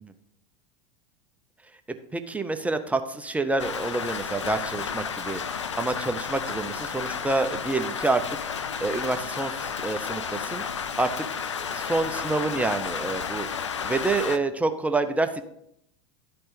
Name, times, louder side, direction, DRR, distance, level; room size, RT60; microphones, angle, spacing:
voice 1, 2.1-8.2 8.5-10.6 11.0-13.5 13.8-15.4, right 3 dB, 10° right, 8 dB, 0.7 m, -28 dB
Rain, 3.6-14.4, left 6 dB, 85° left, 0.5 m, -32 dB
12.0 x 4.3 x 5.1 m, 0.75 s
hypercardioid pair, 85°, 15 cm